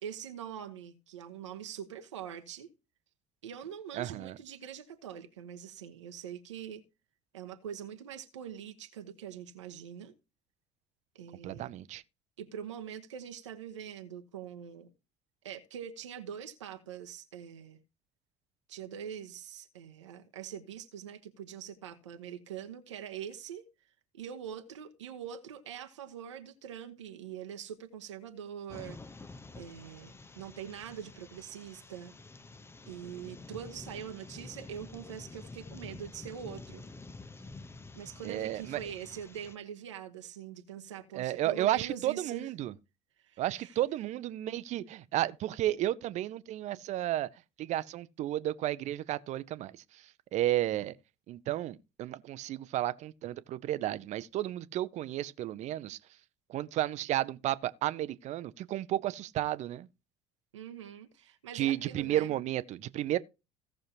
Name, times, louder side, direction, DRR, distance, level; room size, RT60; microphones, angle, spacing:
voice 1, 0.0-2.7 3.4-6.8 7.3-10.1 11.1-11.7 12.4-14.9 15.4-17.8 18.7-23.6 24.1-29.0 29.6-32.1 32.9-36.8 37.9-42.5 43.2-43.8 60.5-62.4, right 9 dB, 80° right, 1.1 m, -43 dB
voice 2, 3.9-4.4 11.4-12.0 38.2-38.8 41.1-42.7 43.4-47.3 47.6-50.9 51.3-56.0 56.5-59.9 61.5-63.2, right 14 dB, 50° right, 0.8 m, -33 dB
sound 1, 28.7-39.5, left 3 dB, 15° left, 0.8 m, -49 dB
17.0 x 6.4 x 2.8 m
figure-of-eight pair, 60°, 15 cm